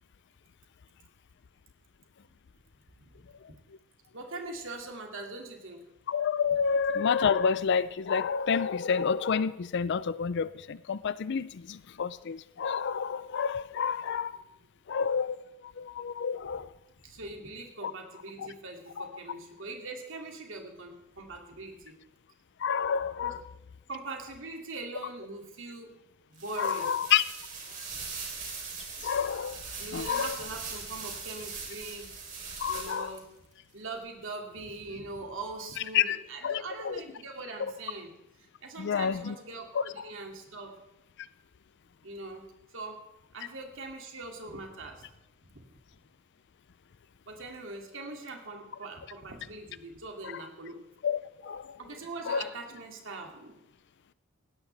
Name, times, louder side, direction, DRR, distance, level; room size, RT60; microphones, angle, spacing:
voice 1, 4.1-5.9 17.0-22.0 23.2-23.4 23.9-25.9 26.3-26.9 29.8-32.1 32.7-33.3 33.7-38.1 38.6-40.8 42.0-42.5 42.7-43.0 43.3-45.1 45.5-45.6 47.3-50.8 51.8-53.6, right 3 dB, 65° right, 2 dB, 2.5 m, -42 dB
voice 2, 6.1-14.4 14.9-15.4 15.6-16.7 17.8-17.9 18.4-18.5 19.0-19.1 22.6-23.3 26.6-27.2 29.0-29.7 29.9-30.4 32.6-33.1 35.9-36.2 36.4-37.0 38.8-39.4 39.7-39.8 50.3-50.4 51.0-51.8 52.3-52.4, left 6 dB, 55° left, 16 dB, 0.4 m, -29 dB
sound 1, 26.3-33.2, right 5 dB, 40° right, 3.7 m, -41 dB
19.0 x 16.0 x 3.4 m, 0.93 s
head